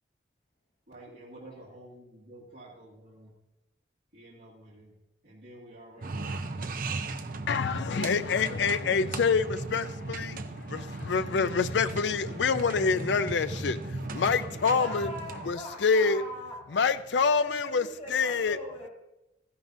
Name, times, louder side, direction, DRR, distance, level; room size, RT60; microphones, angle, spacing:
voice 1, 0.9-3.3 4.1-4.9 5.2-8.4 10.0-11.1, right 1 dB, 65° right, 2.1 m, -52 dB
sound 1, 6.0-15.5, right 3 dB, 50° right, 0.6 m, -37 dB
voice 2, 7.5-10.4 10.7-15.1 15.4-16.2 16.7-18.6, left 5 dB, 75° left, 0.5 m, -26 dB
voice 3, 14.8-16.8 17.3-18.9, left 1 dB, 35° left, 4.1 m, -41 dB
14.0 x 11.0 x 2.6 m
head